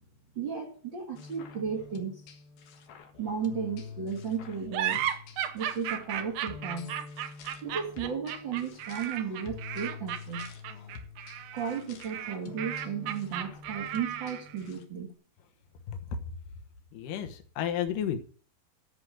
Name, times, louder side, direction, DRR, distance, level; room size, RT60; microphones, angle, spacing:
voice 1, 0.3-2.2 3.2-5.0 5.5-6.9 7.6-10.5 11.5-15.1, right 6 dB, 45° right, 0 dB, 1.6 m, -34 dB
sound 1, 1.1-14.8, left 5 dB, 90° left, 3.4 m, -46 dB
sound 2, 4.7-14.6, right 10 dB, 75° right, 2.4 m, -35 dB
voice 2, 15.9-16.2 16.9-18.2, left 8 dB, 70° left, 6 dB, 2.7 m, -32 dB
13.5 x 5.4 x 7.8 m, 0.43 s
omnidirectional pair, 4.1 m